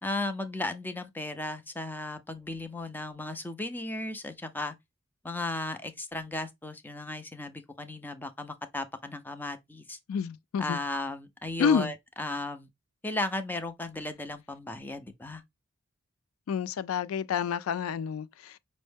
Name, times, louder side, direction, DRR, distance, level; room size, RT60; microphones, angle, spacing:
voice 1, 0.0-4.7 5.2-10.0 10.6-12.7 13.0-15.4, left 2 dB, 10° left, 0.4 m, -35 dB
voice 2, 10.1-10.8 11.6-11.9 16.5-18.6, left 7 dB, 85° left, 0.3 m, -29 dB
5.3 x 2.0 x 3.3 m
head